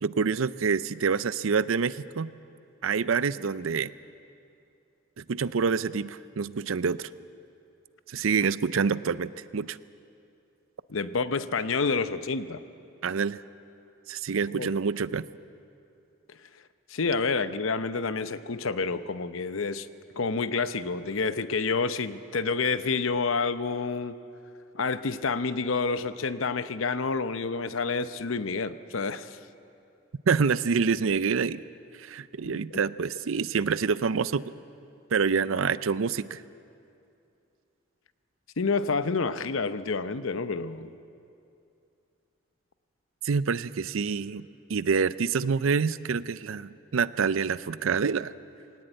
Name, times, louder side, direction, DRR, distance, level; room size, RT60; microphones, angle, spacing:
voice 1, 0.0-2.3 2.8-3.9 5.2-7.1 8.1-9.8 13.0-13.4 14.1-15.2 30.3-31.6 32.0-34.4 35.1-36.4 43.2-48.3, right 5 dB, 75° right, 17 dB, 0.5 m, -27 dB
voice 2, 10.9-12.6 14.5-14.7 16.3-16.4 16.9-19.9 20.1-24.2 24.7-29.4 32.4-32.8 38.6-40.9, left 4 dB, 75° left, 13 dB, 0.7 m, -29 dB
21.0 x 18.0 x 8.9 m, 2.6 s
head